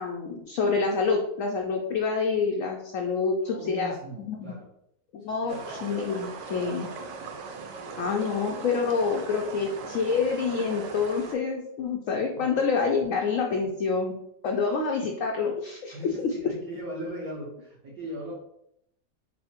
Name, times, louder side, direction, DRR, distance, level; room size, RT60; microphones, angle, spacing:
voice 1, 0.0-4.6 5.1-6.9 8.0-14.1 14.4-16.3, left 5 dB, 75° left, 1 dB, 0.7 m, -27 dB
voice 2, 3.4-4.7 5.4-5.7 7.2-7.3 8.0-8.1 12.4-12.5 15.9-18.3, right 1 dB, 60° right, -5 dB, 1.3 m, -39 dB
sound 1, 5.5-11.3, right 4 dB, 90° right, 1.3 m, -39 dB
4.2 x 2.1 x 4.2 m, 0.76 s
omnidirectional pair, 1.9 m